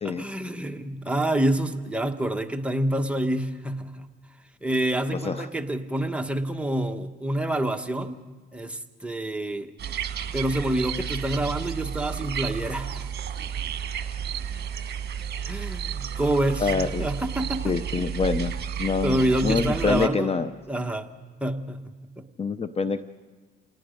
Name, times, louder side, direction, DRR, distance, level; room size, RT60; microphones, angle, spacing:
voice 1, 0.0-4.0 4.6-8.2 8.5-9.7 10.3-13.1 15.5-16.7 17.0-17.7 19.0-20.3 20.7-21.1 21.4-21.8 22.2-22.3, right 1 dB, 5° right, 4 dB, 1.3 m, -27 dB
voice 2, 5.1-5.5 16.6-17.1 17.6-18.5 18.8-20.5 22.4-23.0, left 5 dB, 30° left, 11 dB, 0.7 m, -26 dB
sound 1, 9.8-20.1, right 8 dB, 55° right, 1.3 m, -32 dB
27.5 x 19.0 x 5.2 m, 1.4 s
cardioid pair, 90°, 20 cm